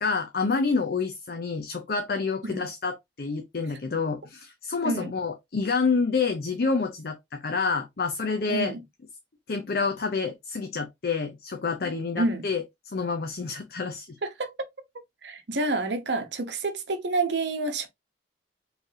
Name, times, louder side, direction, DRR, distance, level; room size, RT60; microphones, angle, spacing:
voice 1, 0.0-8.7 9.5-14.1, left 4 dB, 55° left, 0.6 m, -28 dB
voice 2, 8.5-8.8 12.2-12.4 14.2-14.5 15.2-17.9, right 2 dB, 80° right, 0.9 m, -28 dB
4.6 x 3.3 x 2.7 m
head